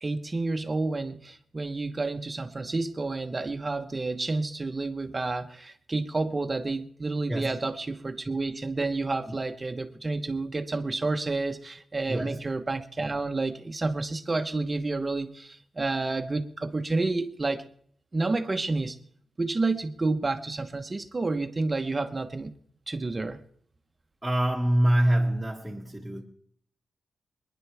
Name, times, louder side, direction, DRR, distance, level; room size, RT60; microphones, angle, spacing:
voice 1, 0.0-17.6 18.1-19.0 19.4-22.5 22.9-23.4, right 3 dB, 30° right, 1.1 m, -30 dB
voice 2, 12.1-12.4 24.2-26.2, right 1 dB, 5° right, 1.8 m, -25 dB
26.5 x 10.5 x 3.5 m
wide cardioid pair, 105°, 0 cm